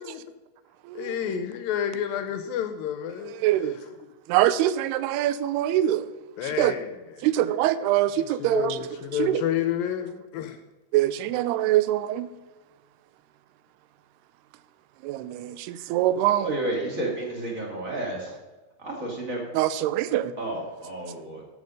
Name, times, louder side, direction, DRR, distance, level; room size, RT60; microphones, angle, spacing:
voice 1, 1.0-4.1 6.4-7.3 8.2-10.6, left 9 dB, 80° left, 2.2 m, -30 dB
voice 2, 3.4-3.8 4.3-6.1 6.6-6.7 7.2-8.8 9.2-9.4 10.9-12.3 15.0-16.6 19.5-20.4, right 13 dB, 90° right, 2.6 m, -24 dB
voice 3, 16.4-18.3 18.8-19.4 20.4-21.4, right 1 dB, 30° right, 1.8 m, -31 dB
13.0 x 6.1 x 5.2 m
omnidirectional pair, 4.5 m